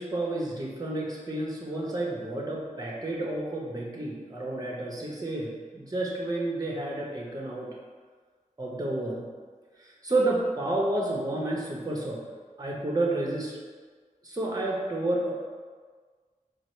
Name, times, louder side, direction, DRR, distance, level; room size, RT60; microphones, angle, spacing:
voice 1, 0.0-7.7 8.6-9.2 9.8-12.2 12.6-13.6 14.2-15.3, right 2 dB, 25° right, -3 dB, 0.8 m, -30 dB
4.7 x 2.0 x 4.4 m, 1.5 s
wide cardioid pair, 65°, 14 cm